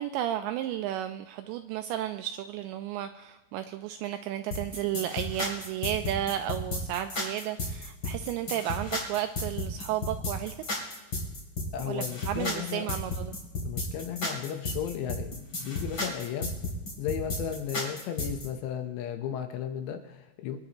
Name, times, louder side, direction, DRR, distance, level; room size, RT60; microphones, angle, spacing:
voice 1, 0.0-10.6 11.8-13.3, right 12 dB, 85° right, 8 dB, 2.6 m, -33 dB
sound 1, 4.5-18.5, left 2 dB, 30° left, 2.8 m, -33 dB
voice 2, 11.7-12.9 13.6-16.5 17.0-20.6, left 9 dB, 75° left, 6 dB, 2.9 m, -35 dB
24.0 x 11.0 x 3.0 m, 1.1 s
omnidirectional pair, 5.6 m